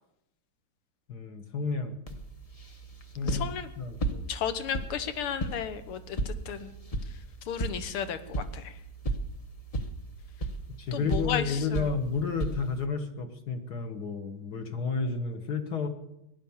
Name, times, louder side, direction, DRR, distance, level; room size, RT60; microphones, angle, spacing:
voice 1, 1.1-1.9 3.2-3.5 3.8-4.3 10.8-15.9, left 5 dB, 50° left, 7 dB, 1.7 m, -31 dB
sound 1, 2.1-12.8, right 2 dB, 30° left, 0.6 m, -36 dB
voice 2, 3.2-3.7 4.3-6.7 7.5-8.2 8.5-8.6 10.9-11.8, left 8 dB, 80° left, 11 dB, 2.0 m, -33 dB
17.5 x 11.0 x 7.1 m, 0.86 s
omnidirectional pair, 2.4 m